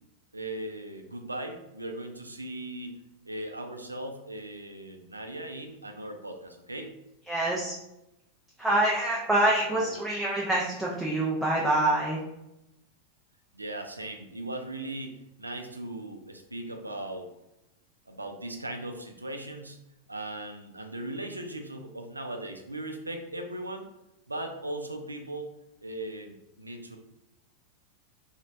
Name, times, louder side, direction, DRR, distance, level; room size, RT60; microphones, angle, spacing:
voice 1, 0.3-3.0 3.3-6.9 9.7-10.0 13.5-17.3 18.1-19.8 20.1-23.9 24.3-25.5 25.8-27.0, right 1 dB, 80° right, 4 dB, 0.3 m, -38 dB
voice 2, 7.3-7.7 8.6-12.2, right 1 dB, 5° right, -5 dB, 0.5 m, -26 dB
3.0 x 2.0 x 2.5 m, 0.89 s
figure-of-eight pair, 90°, 0 cm